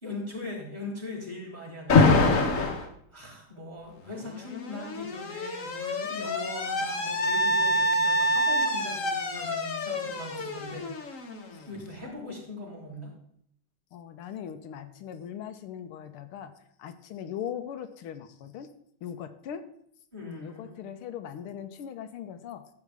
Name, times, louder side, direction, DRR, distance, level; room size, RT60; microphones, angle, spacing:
voice 1, 0.0-11.0 11.7-13.1 20.1-20.8, left 2 dB, 20° right, -3 dB, 3.4 m, -40 dB
Alarm, 1.9-2.9 4.1-11.8, left 2 dB, 45° left, 1.3 m, -26 dB
voice 2, 13.9-16.5 16.8-18.7 19.0-19.6 20.2-22.6, left 9 dB, 90° left, 8 dB, 1.7 m, -39 dB
13.0 x 8.3 x 3.5 m, 0.69 s
omnidirectional pair, 2.4 m